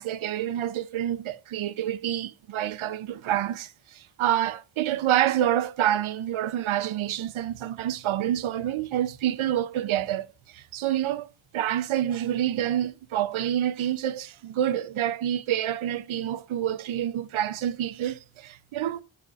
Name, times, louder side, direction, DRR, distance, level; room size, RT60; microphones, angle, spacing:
voice 1, 0.0-10.3 10.5-11.3 11.5-19.0, right 11 dB, 90° right, 0.5 m, -27 dB
12.0 x 4.2 x 2.4 m
cardioid pair, 65°, 47 cm